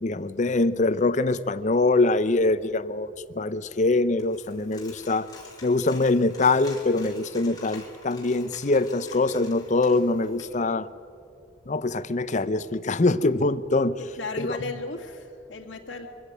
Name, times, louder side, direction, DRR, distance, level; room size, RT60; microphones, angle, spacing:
voice 1, 0.0-5.3 5.6-10.9 11.7-14.0 14.4-14.6, left 2 dB, 40° left, 14 dB, 0.6 m, -23 dB
Coin (dropping), 4.2-10.4, left 4 dB, 20° left, 4.2 m, -48 dB
voice 2, 14.0-16.1, left 3 dB, 65° left, 1 dB, 2.1 m, -35 dB
23.0 x 15.0 x 9.2 m, 2.6 s
head